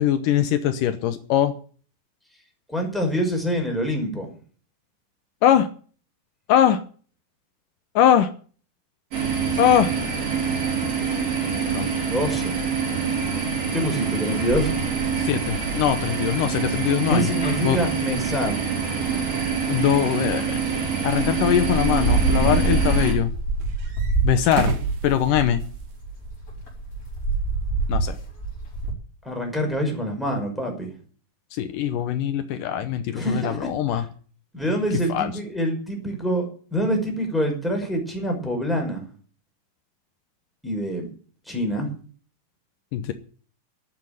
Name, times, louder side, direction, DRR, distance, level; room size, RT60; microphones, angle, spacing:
voice 1, 0.0-1.5 5.4-5.7 6.5-6.8 8.0-8.3 9.6-9.9 11.7-11.9 15.2-17.3 17.6-17.8 19.7-20.5 21.0-23.3 24.2-24.8 25.0-25.6 27.9-28.2 31.5-34.0 35.1-35.3 42.9-43.1, left 10 dB, 80° left, 10 dB, 2.5 m, -21 dB
voice 2, 2.7-4.3 12.0-12.6 13.7-14.7 17.0-18.6 29.2-30.9 33.1-34.0 34.5-39.0 40.6-41.1 41.5-41.9, equal, ahead, 1 dB, 5.4 m, -26 dB
sound 1, 9.1-23.1, right 6 dB, 45° right, 4.6 m, -26 dB
sound 2, 14.5-20.5 21.0-28.9, right 2 dB, 40° left, 5.5 m, -27 dB
sound 3, 20.8-20.9 21.8-22.7 23.6-25.9 26.2-26.3 27.9-28.0, right 5 dB, 85° right, 3.9 m, -31 dB
12.5 x 8.7 x 9.2 m, 0.43 s
omnidirectional pair, 3.9 m